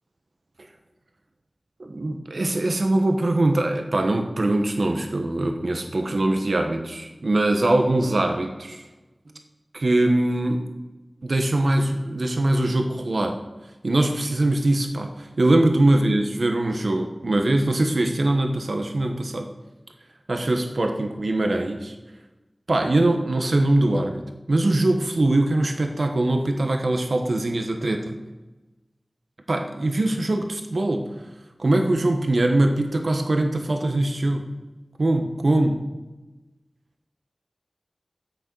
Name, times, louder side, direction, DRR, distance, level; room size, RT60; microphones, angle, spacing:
voice 1, 1.8-8.8 9.7-10.6 11.2-13.4 13.8-19.5 20.3-21.9 22.7-28.2 29.5-31.1 31.6-34.5 35.0-35.8, right 1 dB, 75° right, 4 dB, 1.3 m, -22 dB
13.5 x 8.2 x 6.2 m, 1.1 s
wide cardioid pair, 60°, 0 cm